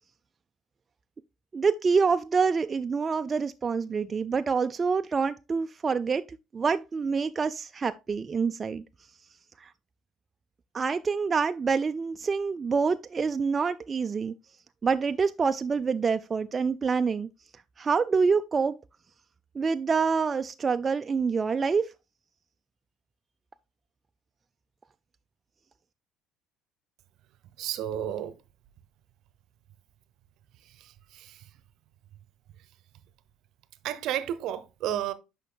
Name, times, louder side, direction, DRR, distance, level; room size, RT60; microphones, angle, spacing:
voice 1, 1.5-6.2 6.5-8.8 9.6-9.7 10.7-14.3 14.8-17.3 17.8-18.8 19.6-21.9, right 5 dB, 35° right, 0.3 m, -26 dB
voice 2, 27.6-28.4 30.8-31.4 33.8-35.1, right 11 dB, 65° right, 0.7 m, -32 dB
10.0 x 5.8 x 2.2 m
hypercardioid pair, 60°, 0 cm